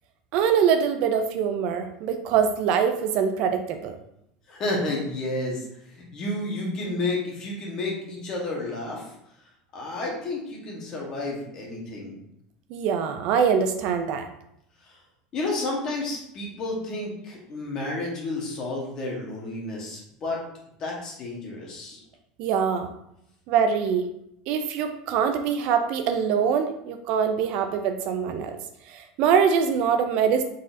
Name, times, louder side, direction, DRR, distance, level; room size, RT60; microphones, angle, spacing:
voice 1, 0.3-4.0 12.7-14.3 22.4-22.9 23.5-24.1 24.5-28.6 28.9-30.4, right 7 dB, 45° right, 7 dB, 0.3 m, -23 dB
voice 2, 4.5-5.6 5.9-9.1 9.7-12.1 15.3-20.4 20.8-22.0, left 2 dB, 30° left, -2 dB, 1.1 m, -31 dB
3.9 x 3.8 x 2.6 m, 0.77 s
cardioid pair, 165°, 2 cm